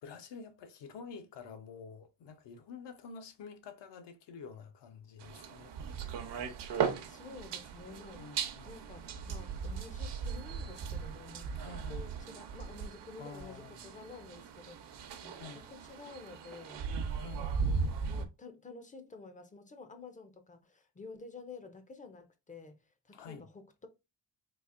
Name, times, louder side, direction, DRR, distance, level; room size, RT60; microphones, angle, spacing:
voice 1, 0.0-5.8 8.2-8.8 11.6-12.1 13.2-13.9 15.3-15.7 17.2-17.6 23.1-23.4, left 5 dB, 80° left, 0.7 m, -49 dB
sound 1, 5.2-18.3, right 6 dB, 75° right, 0.7 m, -38 dB
voice 2, 7.0-8.3 8.7-16.8 17.2-23.9, left 3 dB, 20° left, 0.3 m, -51 dB
4.0 x 2.7 x 2.4 m
wide cardioid pair, 155°, 42 cm